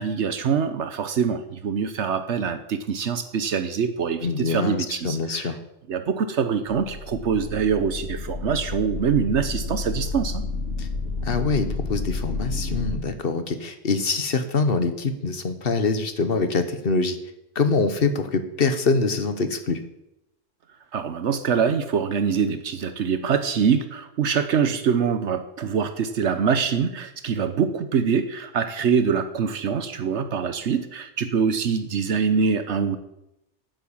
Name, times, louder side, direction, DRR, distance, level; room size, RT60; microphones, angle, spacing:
voice 1, 0.0-5.5 5.9-10.4 20.9-33.0, right 6 dB, 75° right, 10 dB, 1.1 m, -24 dB
voice 2, 4.2-5.6 10.8-10.9 11.2-17.2 17.5-19.8, left 4 dB, 55° left, 10 dB, 1.4 m, -24 dB
sound 1, 6.7-13.0, left 3 dB, 85° left, 2.0 m, -30 dB
11.0 x 9.4 x 7.3 m, 0.86 s
omnidirectional pair, 1.2 m